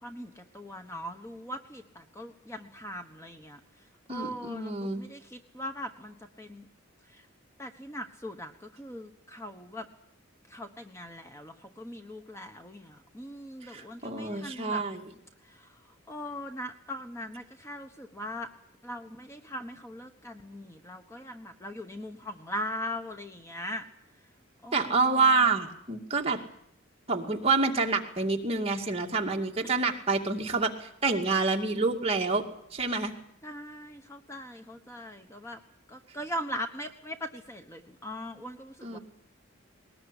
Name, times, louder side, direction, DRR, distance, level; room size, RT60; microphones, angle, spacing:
voice 1, 0.0-3.6 4.1-6.7 7.1-7.2 7.6-9.9 10.5-14.8 15.4-15.8 16.1-18.5 18.8-23.9 24.6-25.4 29.6-29.7 33.4-35.6 35.9-39.0, equal, 15° left, 6 dB, 1.2 m, -40 dB
voice 2, 4.1-5.0 13.7-15.1 24.7-26.4 27.1-32.4 32.7-33.1 38.8-39.0, right 3 dB, 30° right, 1 dB, 2.3 m, -27 dB
20.0 x 19.5 x 9.9 m, 0.73 s
head